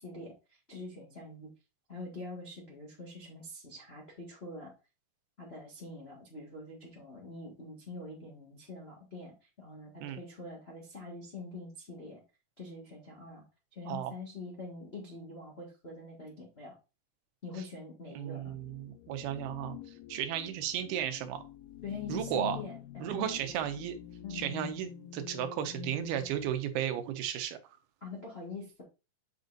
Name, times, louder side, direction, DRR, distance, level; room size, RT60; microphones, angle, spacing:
voice 1, 0.0-1.5 1.9-4.7 5.4-12.2 12.6-13.4 13.7-16.7 17.4-18.5 21.8-23.5 24.2-24.5 28.0-28.8, left 3 dB, 60° left, -3 dB, 0.6 m, -44 dB
voice 2, 18.1-21.4 22.1-22.6 23.0-24.0 24.3-27.6, right 10 dB, 80° right, 8 dB, 2.7 m, -34 dB
sound 1, 18.4-26.6, left 9 dB, 85° left, 2.5 m, -46 dB
7.7 x 5.2 x 2.6 m, 0.29 s
omnidirectional pair, 4.4 m